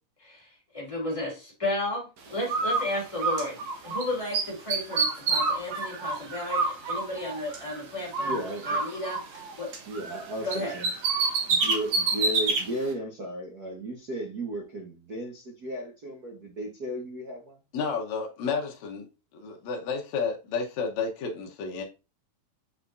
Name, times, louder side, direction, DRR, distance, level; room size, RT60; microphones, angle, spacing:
voice 1, 0.7-9.7 10.4-10.7, left 1 dB, 10° left, 2.6 m, -33 dB
Bird, 2.5-4.0 4.3-7.8 8.1-10.2 10.5-12.6, right 4 dB, 60° right, 2.2 m, -28 dB
voice 2, 8.2-8.8 9.9-10.9 11.5-17.6, equal, 90° right, 0.8 m, -35 dB
voice 3, 17.7-19.1 19.3-21.8, left 5 dB, 65° left, 2.2 m, -31 dB
8.4 x 4.9 x 2.6 m
omnidirectional pair, 4.0 m